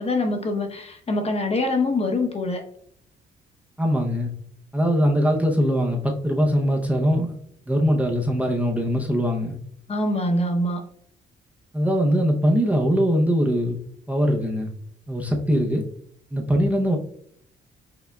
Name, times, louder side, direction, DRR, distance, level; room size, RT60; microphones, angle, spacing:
voice 1, 0.0-2.6 9.9-10.8, left 2 dB, 30° left, 4 dB, 0.9 m, -24 dB
voice 2, 3.8-4.3 4.7-7.4 7.7-9.6 11.7-13.8 14.1-14.7 15.1-15.8 16.3-17.0, equal, 5° right, 0 dB, 0.7 m, -21 dB
5.7 x 3.4 x 2.3 m, 0.66 s
cardioid pair, 90°, 20 cm